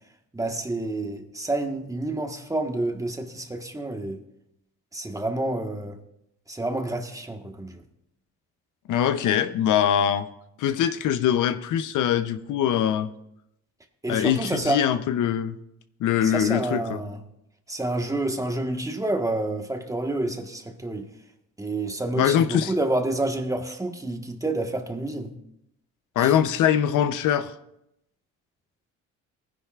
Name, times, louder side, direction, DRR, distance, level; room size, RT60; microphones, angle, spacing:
voice 1, 0.3-4.2 4.9-6.0 6.5-7.8 14.0-14.8 16.2-17.2 17.7-21.1 21.6-25.3 26.2-26.3, right 2 dB, 10° right, 1.4 m, -28 dB
voice 2, 8.9-10.3 10.6-13.1 14.1-15.6 16.0-17.0 22.1-22.7 26.2-27.5, left 9 dB, 80° left, 0.7 m, -23 dB
19.0 x 10.5 x 2.4 m
cardioid pair, 90°, 30 cm